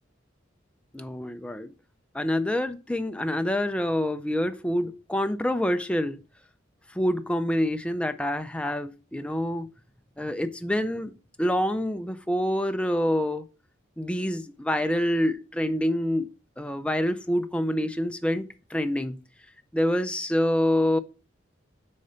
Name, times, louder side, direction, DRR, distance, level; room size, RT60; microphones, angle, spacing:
voice 1, 0.9-1.7 2.1-6.2 6.9-9.7 10.2-11.1 11.4-13.4 14.0-19.2 19.7-21.0, left 1 dB, 5° left, 0.4 m, -26 dB
6.5 x 3.8 x 5.6 m
head